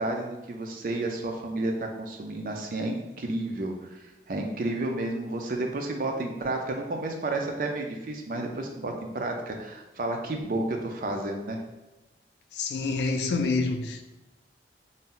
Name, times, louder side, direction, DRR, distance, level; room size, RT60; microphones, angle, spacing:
voice 1, 0.0-11.6, right 2 dB, 50° right, 0.4 m, -31 dB
voice 2, 12.5-14.0, left 3 dB, 70° left, 0.3 m, -27 dB
2.7 x 2.0 x 3.7 m
head